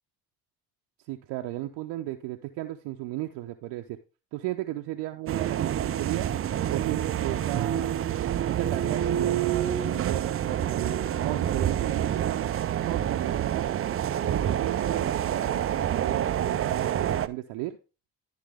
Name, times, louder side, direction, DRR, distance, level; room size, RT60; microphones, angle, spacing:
voice 1, 1.1-4.0 4.3-6.3 6.7-8.0 8.5-12.5 12.9-13.8 14.4-17.8, right 16 dB, 60° right, 4 dB, 0.8 m, -35 dB
sound 1, 5.3-17.3, right 10 dB, 30° right, 0.5 m, -27 dB
13.0 x 4.7 x 3.5 m, 0.32 s
hypercardioid pair, 50°, 45 cm